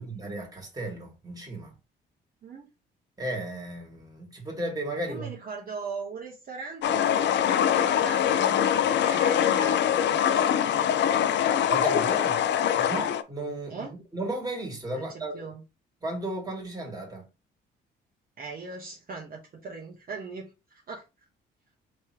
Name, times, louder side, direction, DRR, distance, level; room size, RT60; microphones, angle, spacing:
voice 1, 0.0-1.7 3.2-5.3 11.7-12.3 12.8-13.9 14.1-15.3 16.0-17.2, right 2 dB, 20° right, 2.1 m, -34 dB
voice 2, 5.0-11.3 11.9-12.0 12.3-12.8 13.7-13.9 14.9-15.6 18.4-20.5 20.9-21.0, right 4 dB, 50° right, 1.1 m, -40 dB
sound 1, 6.8-13.2, left 9 dB, 65° left, 0.5 m, -23 dB
3.3 x 3.1 x 4.5 m
cardioid pair, 90°, 20 cm